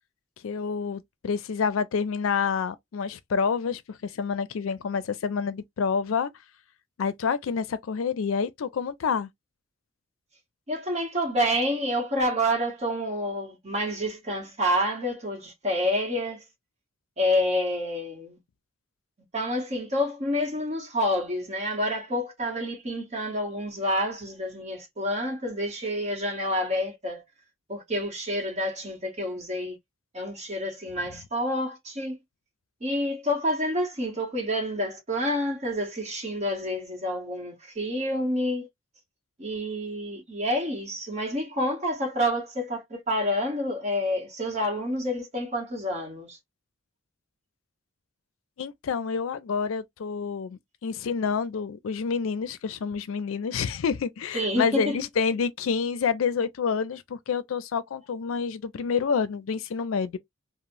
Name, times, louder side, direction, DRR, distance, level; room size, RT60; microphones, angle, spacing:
voice 1, 0.4-6.3 7.0-9.3 48.6-60.2, left 6 dB, 85° left, 0.4 m, -28 dB
voice 2, 10.7-16.4 17.2-18.4 19.3-27.2 27.7-29.8 30.1-32.2 32.8-38.7 39.4-46.4 54.3-55.0, equal, 35° right, 0.9 m, -28 dB
3.0 x 2.0 x 2.5 m
head